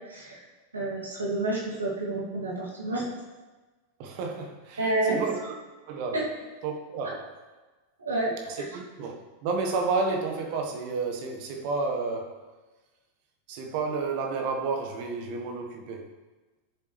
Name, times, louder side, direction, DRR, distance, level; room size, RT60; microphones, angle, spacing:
voice 1, 0.1-0.4 0.7-3.1 4.8-5.2 6.1-6.2 8.0-8.7, right 2 dB, 75° right, 2.7 m, -29 dB
voice 2, 4.0-5.5 5.8-6.2 6.6-7.3 8.5-12.4 13.5-16.1, right 4 dB, 45° right, 1.4 m, -31 dB
13.0 x 7.4 x 3.4 m
figure-of-eight pair, 90°, 0 cm